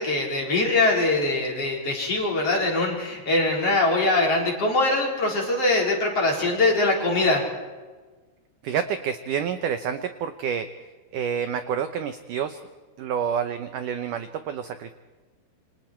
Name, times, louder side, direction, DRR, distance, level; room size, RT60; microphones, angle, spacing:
voice 1, 0.0-7.4, left 2 dB, 35° left, -1 dB, 5.1 m, -22 dB
voice 2, 8.6-10.7 11.1-12.6 13.0-14.9, right 8 dB, 80° right, 9 dB, 1.9 m, -28 dB
28.0 x 26.5 x 4.5 m, 1.3 s
omnidirectional pair, 4.9 m